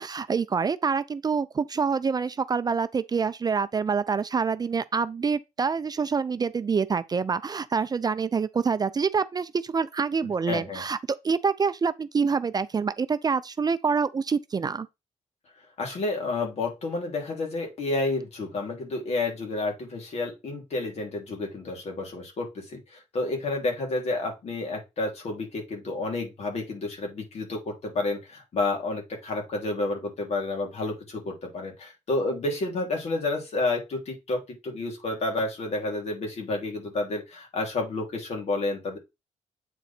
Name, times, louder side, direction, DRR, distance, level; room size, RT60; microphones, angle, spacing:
voice 1, 0.0-14.9, right 5 dB, 35° right, 0.4 m, -26 dB
voice 2, 10.5-10.8 15.8-39.0, left 2 dB, 60° left, 3.0 m, -30 dB
8.3 x 3.8 x 4.3 m
cardioid pair, 85°, 12 cm